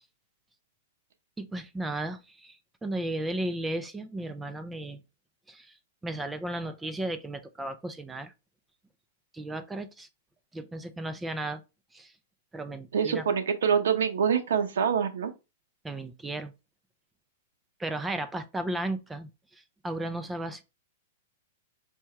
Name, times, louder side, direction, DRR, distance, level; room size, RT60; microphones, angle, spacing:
voice 1, 1.4-5.0 5.5-5.8 6.0-8.3 9.3-10.1 10.5-11.6 11.9-12.1 12.5-13.2 15.8-16.5 17.8-20.6, right 1 dB, 5° right, 0.3 m, -35 dB
voice 2, 12.9-15.3, right 7 dB, 85° right, 0.7 m, -25 dB
4.6 x 2.8 x 3.2 m
supercardioid pair, 170°, 0 cm